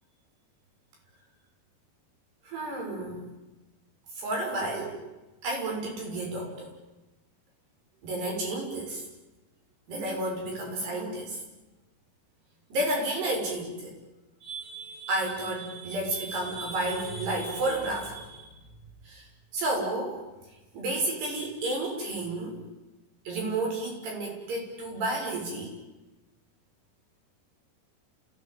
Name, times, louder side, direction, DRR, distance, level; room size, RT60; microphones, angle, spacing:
voice 1, 2.5-3.3 4.2-5.0 5.4-6.8 8.0-9.0 9.9-11.4 12.7-14.0 14.4-18.6 19.0-19.3 19.5-20.2 20.7-22.5 23.3-25.7, right 2 dB, 70° right, 1 dB, 8.5 m, -31 dB
30.0 x 17.5 x 9.4 m, 1.1 s
omnidirectional pair, 4.9 m